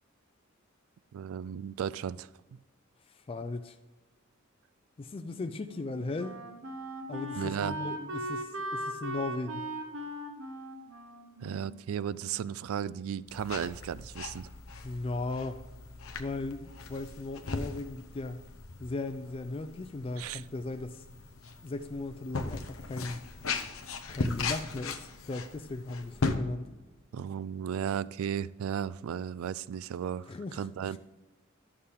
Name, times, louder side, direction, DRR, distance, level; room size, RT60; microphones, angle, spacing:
voice 1, 1.1-2.3 7.4-7.8 11.4-14.5 20.2-20.4 27.1-31.0, right 8 dB, 90° right, 18 dB, 0.3 m, -35 dB
voice 2, 3.3-3.8 5.0-6.4 7.1-9.7 14.8-15.6 16.2-18.4 18.8-21.0 21.6-23.2 24.1-26.7 30.3-31.0, left 2 dB, 25° left, 8 dB, 0.3 m, -37 dB
Wind instrument woodwind instrument, 5.2-12.5, right 1 dB, 70° right, 1.0 m, -39 dB
sound 1, 13.3-26.3, left 3 dB, 80° left, 0.8 m, -38 dB
11.5 x 6.6 x 3.5 m, 1.2 s
head